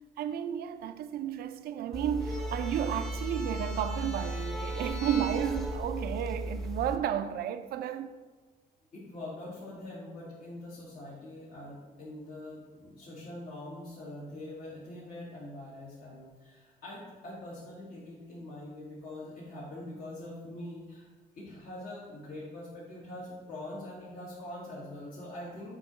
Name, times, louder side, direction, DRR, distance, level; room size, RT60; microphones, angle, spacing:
voice 1, 0.2-8.1, right 9 dB, 80° right, 0.4 m, -32 dB
sound 1, 1.9-7.0, right 1 dB, ahead, 0.7 m, -35 dB
voice 2, 8.9-21.1 21.3-25.7, left 1 dB, 65° left, 1.7 m, -43 dB
7.6 x 2.9 x 6.0 m
cardioid pair, 125°, 16 cm